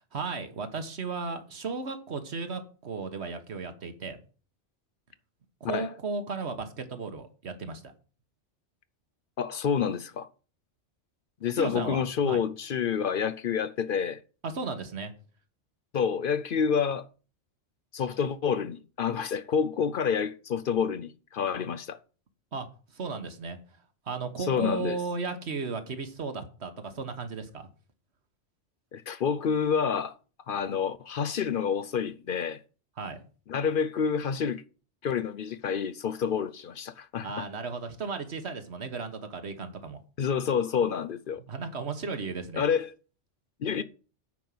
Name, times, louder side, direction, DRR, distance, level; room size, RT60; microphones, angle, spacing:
voice 1, 0.1-4.2 5.6-7.9 11.6-12.4 14.4-15.1 22.5-23.8 24.0-27.7 33.0-33.2 37.2-40.0 41.4-42.6, right 4 dB, 65° right, 1.6 m, -35 dB
voice 2, 9.4-10.3 11.4-14.2 15.9-17.1 17.9-22.0 24.5-25.0 28.9-30.2 30.5-32.6 33.5-34.6 35.0-37.5 40.2-41.4 42.6-42.9 43.6-43.8, left 7 dB, 55° left, 0.7 m, -28 dB
9.3 x 5.4 x 7.7 m
omnidirectional pair, 1.2 m